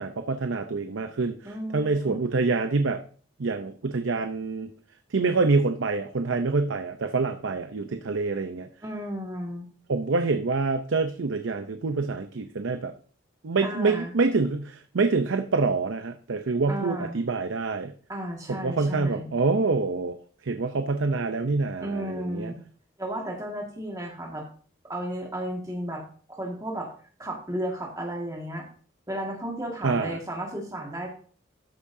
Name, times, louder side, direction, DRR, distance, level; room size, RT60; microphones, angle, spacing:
voice 1, 0.0-3.0 3.4-4.7 5.1-8.7 9.9-12.9 13.4-17.9 18.5-20.2 20.4-22.5 29.8-30.2, right 3 dB, 80° right, 8 dB, 0.6 m, -26 dB
voice 2, 1.4-2.2 8.8-9.7 13.6-14.1 16.7-17.2 18.1-19.3 21.8-22.5 23.0-24.4 24.8-26.0 26.3-26.9 27.2-28.7 29.1-31.1, right 1 dB, 15° right, 0 dB, 1.8 m, -33 dB
13.0 x 8.4 x 2.7 m, 0.43 s
head